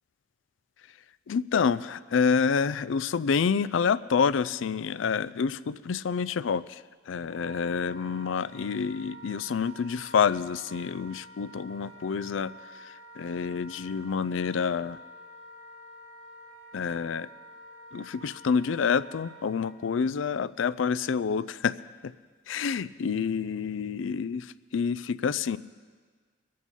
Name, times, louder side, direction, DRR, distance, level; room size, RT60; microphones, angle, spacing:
voice 1, 1.3-6.8 7.1-12.5 12.8-15.0 16.7-17.3 17.9-21.8 22.0-22.1 22.5-25.6, left 6 dB, 75° left, 17 dB, 0.4 m, -28 dB
Wind instrument woodwind instrument, 7.3-19.7, right 1 dB, 85° right, 4.3 m, -49 dB
23.5 x 8.5 x 5.4 m, 1.5 s
head